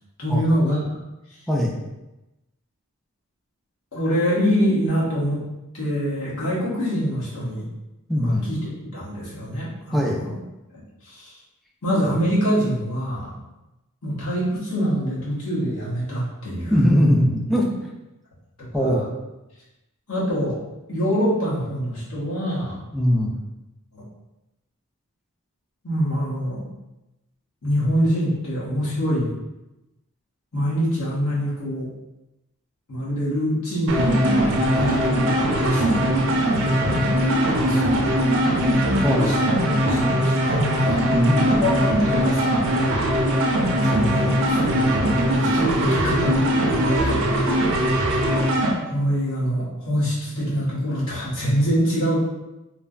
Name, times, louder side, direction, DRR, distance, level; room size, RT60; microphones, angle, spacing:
voice 1, 0.2-0.8 1.3-1.4 3.9-5.4 5.7-7.7 8.2-8.6 8.9-10.4 11.0-11.3 11.8-13.3 14.0-16.7 18.6-19.0 20.1-20.6 20.9-22.8 23.9-24.0 25.8-26.7 27.6-29.3 30.5-31.9 32.9-37.0 37.5-38.1 39.2-39.5 39.8-42.9 43.8-47.3 48.8-52.2, equal, 75° left, -8 dB, 1.1 m, -25 dB
voice 2, 8.1-8.5 9.9-10.2 16.7-17.7 18.7-19.0 22.9-23.4 39.0-39.4 41.1-41.5, equal, ahead, -2 dB, 0.3 m, -20 dB
sound 1, 33.9-48.7, right 1 dB, 60° right, 0.5 m, -20 dB
3.2 x 2.1 x 2.3 m, 0.98 s
head